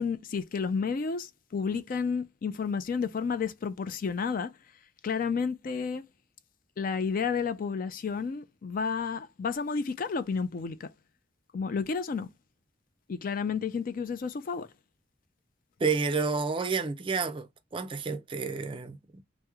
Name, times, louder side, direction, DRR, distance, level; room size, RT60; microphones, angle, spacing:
voice 1, 0.0-4.5 5.0-6.1 6.8-10.9 11.5-12.3 13.1-14.7, left 5 dB, 45° left, 0.4 m, -31 dB
voice 2, 15.8-17.5 17.7-19.2, right 4 dB, 25° right, 0.4 m, -30 dB
3.0 x 2.0 x 3.5 m
head